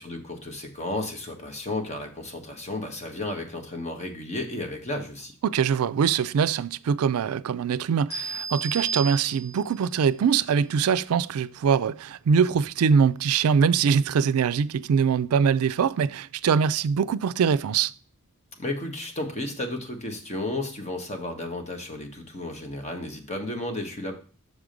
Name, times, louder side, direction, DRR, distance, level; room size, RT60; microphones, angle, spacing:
voice 1, 0.0-5.3 18.6-24.1, left 2 dB, 30° left, 1.3 m, -33 dB
voice 2, 5.4-17.9, right 6 dB, 85° right, 0.4 m, -23 dB
sound 1, 8.1-9.8, right 5 dB, 50° left, 3.5 m, -33 dB
6.4 x 4.9 x 5.1 m
head